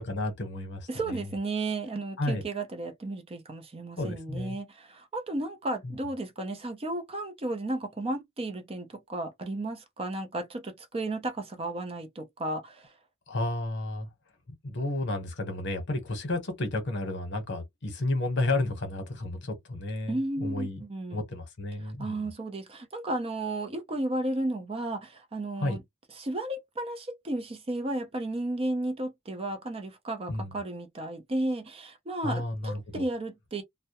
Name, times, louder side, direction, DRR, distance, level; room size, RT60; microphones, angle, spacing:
voice 1, 0.0-1.2 2.2-2.4 4.0-4.6 5.8-6.0 13.3-14.1 14.6-20.8 21.1-22.2 25.6-25.8 30.3-30.5 32.2-33.0, left 2 dB, 60° left, 0.9 m, -32 dB
voice 2, 0.9-12.9 20.1-21.2 21.8-25.8 26.2-33.6, right 2 dB, 30° right, 0.5 m, -33 dB
2.2 x 2.0 x 2.8 m
head